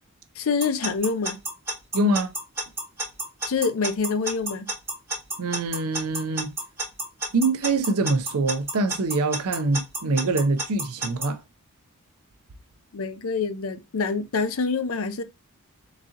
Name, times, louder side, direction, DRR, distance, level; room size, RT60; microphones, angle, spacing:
voice 1, 0.4-1.4 3.5-4.6 12.9-15.2, left 4 dB, 65° left, 0.5 m, -26 dB
Alarm / Clock, 0.6-11.3, right 2 dB, 10° right, 2.3 m, -29 dB
voice 2, 1.9-2.3 5.4-6.5 7.3-11.4, right 2 dB, 80° right, 0.6 m, -24 dB
4.0 x 3.7 x 2.8 m
head